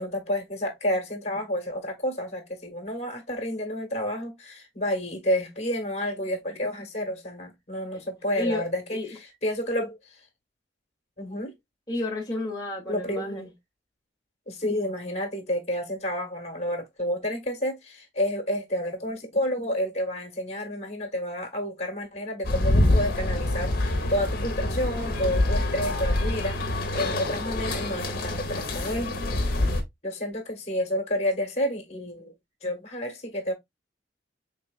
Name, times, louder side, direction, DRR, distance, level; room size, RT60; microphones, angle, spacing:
voice 1, 0.0-10.2 11.2-11.5 12.9-13.5 14.5-29.1 30.0-32.3 32.6-33.5, left 1 dB, 35° left, 1.3 m, -30 dB
voice 2, 11.9-13.4, left 2 dB, 20° left, 0.9 m, -31 dB
sound 1, 22.4-29.8, left 1 dB, 55° left, 0.9 m, -26 dB
4.4 x 3.4 x 2.3 m
head